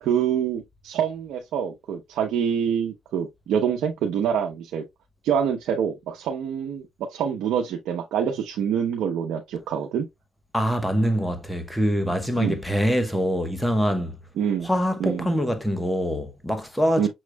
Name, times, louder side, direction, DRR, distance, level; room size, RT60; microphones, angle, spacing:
voice 1, 0.0-4.8 5.2-10.1 12.4-12.6 14.4-14.7 15.0-15.4 17.0-17.1, right 8 dB, 80° right, 0.8 m, -26 dB
voice 2, 10.5-14.1 14.6-17.1, equal, 5° left, 1.1 m, -24 dB
6.4 x 3.1 x 2.3 m
cardioid pair, 90°, 0 cm